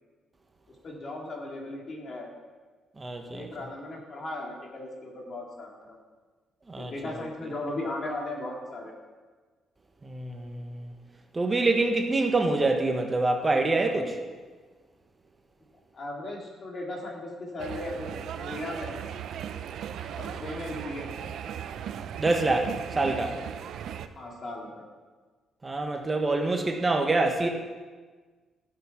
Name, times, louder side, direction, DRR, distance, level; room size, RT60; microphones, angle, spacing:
voice 1, 0.7-2.3 3.2-6.0 6.8-8.9 15.9-19.1 20.1-21.3 24.2-24.8, left 2 dB, 45° left, -1 dB, 3.0 m, -37 dB
voice 2, 3.0-3.5 6.7-7.3 10.0-10.9 11.3-14.2 22.2-23.4 25.6-27.5, right 2 dB, 25° right, 3 dB, 1.3 m, -26 dB
sound 1, 17.6-24.1, right 9 dB, 75° right, 0.6 m, -37 dB
12.5 x 7.1 x 6.0 m, 1.4 s
cardioid pair, 90°, 0 cm